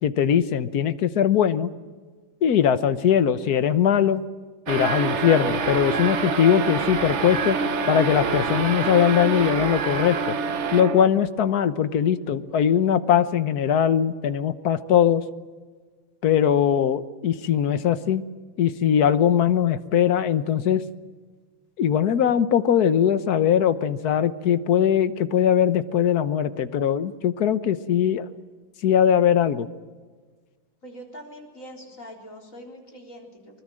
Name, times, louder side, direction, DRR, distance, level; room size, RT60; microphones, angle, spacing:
voice 1, 0.0-1.7 2.4-4.2 4.7-7.6 7.9-10.4 10.7-15.2 16.2-18.2 18.6-20.8 21.8-28.3 28.8-29.7, left 9 dB, 55° left, 13 dB, 1.3 m, -21 dB
sound 1, 4.7-11.3, right 5 dB, 45° right, 1.0 m, -26 dB
voice 2, 30.8-33.6, equal, 40° left, 1 dB, 4.3 m, -43 dB
24.0 x 21.0 x 7.6 m, 1.4 s
omnidirectional pair, 2.2 m